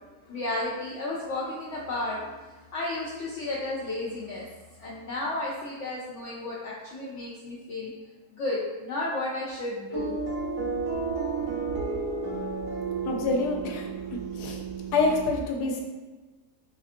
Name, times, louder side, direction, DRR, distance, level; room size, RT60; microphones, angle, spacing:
voice 1, 0.2-4.5 4.8-7.9 8.3-10.1, left 2 dB, 65° left, -6 dB, 0.7 m, -33 dB
sound 1, 9.9-15.3, right 4 dB, 75° right, 1.2 m, -32 dB
voice 2, 13.0-13.9 14.4-14.6 14.9-15.8, left 3 dB, 85° left, 1 dB, 1.1 m, -26 dB
4.1 x 2.6 x 2.5 m, 1.3 s
omnidirectional pair, 1.7 m